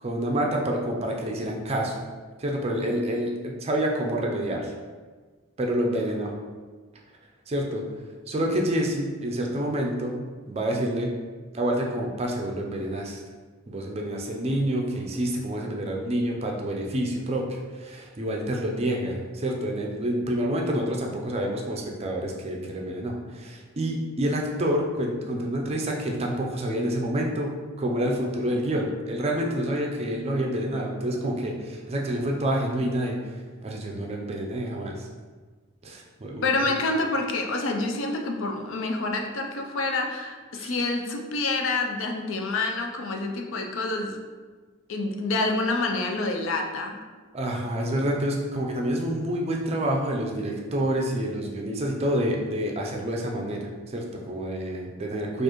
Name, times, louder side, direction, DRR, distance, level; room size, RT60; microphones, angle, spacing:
voice 1, 0.0-2.0 2.4-4.7 5.6-6.3 7.5-7.8 8.3-10.2 10.5-11.1 11.5-13.2 13.7-33.2 33.6-35.1 35.8-36.5 40.5-40.7 47.3-55.4, right 1 dB, 30° right, 0 dB, 0.4 m, -28 dB
voice 2, 36.4-44.2 44.9-47.0, left 2 dB, 65° left, 3 dB, 0.4 m, -27 dB
4.4 x 2.5 x 3.0 m, 1.4 s
head